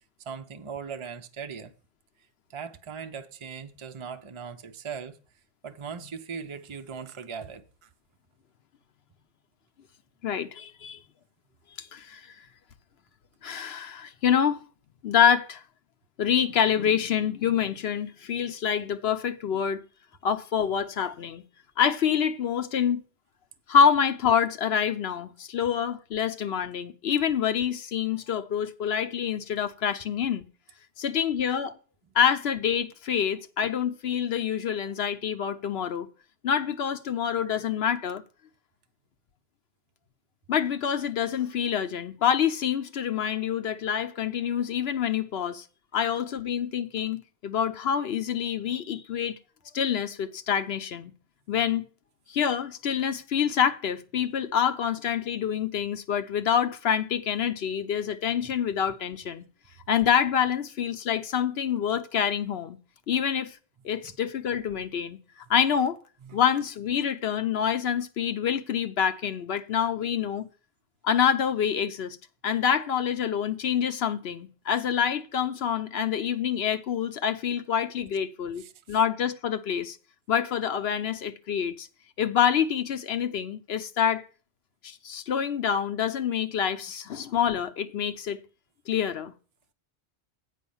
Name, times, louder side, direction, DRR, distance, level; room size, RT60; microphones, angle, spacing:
voice 1, 0.2-1.7 2.5-5.2 5.6-7.9 58.4-58.5 64.0-64.1 66.2-66.4 78.6-79.0, right 6 dB, 35° right, 0.5 m, -39 dB
voice 2, 10.2-11.0 11.8-12.3 13.4-14.6 15.0-15.6 16.2-19.8 20.2-21.4 21.8-23.0 23.7-30.5 31.0-31.8 32.1-36.1 36.4-38.2 40.5-45.6 45.9-49.4 49.7-51.1 51.5-51.9 52.3-59.5 59.9-62.8 63.1-63.6 63.8-65.2 65.5-66.0 66.3-70.5 71.0-72.2 72.4-78.6 78.9-80.0 80.3-81.9 82.2-84.3 84.8-88.4 88.9-89.3, left 8 dB, 65° left, 0.9 m, -26 dB
8.3 x 5.2 x 7.0 m
omnidirectional pair, 1.2 m